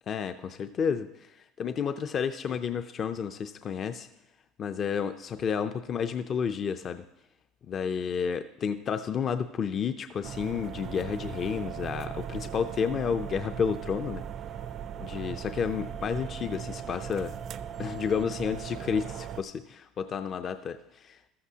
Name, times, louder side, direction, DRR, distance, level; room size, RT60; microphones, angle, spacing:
voice 1, 0.1-4.1 4.6-7.0 7.7-14.2 15.0-17.4 17.8-21.3, left 7 dB, 35° left, 9 dB, 0.5 m, -31 dB
sound 1, 10.2-19.4, right 9 dB, 40° right, 0.4 m, -38 dB
14.5 x 13.0 x 2.8 m, 0.89 s
cardioid pair, 130°, 0 cm